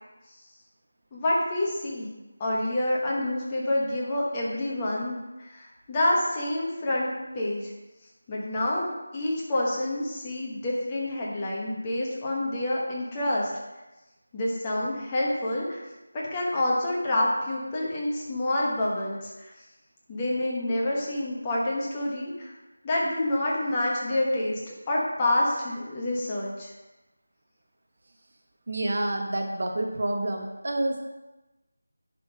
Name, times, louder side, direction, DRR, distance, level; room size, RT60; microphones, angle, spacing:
voice 1, 1.1-2.1 2.4-7.1 7.3-7.7 8.3-13.5 14.3-15.8 16.1-19.5 20.1-22.5 22.8-24.6 24.9-26.7, left 1 dB, 15° left, -4 dB, 1.0 m, -27 dB
voice 2, 28.7-31.0, right 1 dB, 45° right, 3 dB, 0.9 m, -28 dB
10.0 x 3.7 x 5.0 m, 1.1 s
figure-of-eight pair, 175°, 0 cm